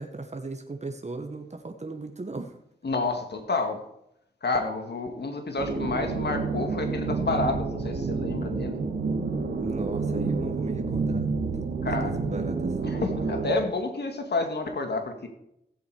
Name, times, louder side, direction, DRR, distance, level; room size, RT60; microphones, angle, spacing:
voice 1, 0.0-2.6 9.6-12.8, right 3 dB, 40° right, 4 dB, 1.7 m, -37 dB
voice 2, 2.8-3.8 4.4-8.8 11.8-12.2 12.8-15.3, left 3 dB, 75° left, 5 dB, 2.0 m, -29 dB
sound 1, 5.6-13.5, right 4 dB, 85° right, 1.8 m, -29 dB
16.0 x 8.1 x 4.9 m, 0.76 s
cardioid pair, 45°, 18 cm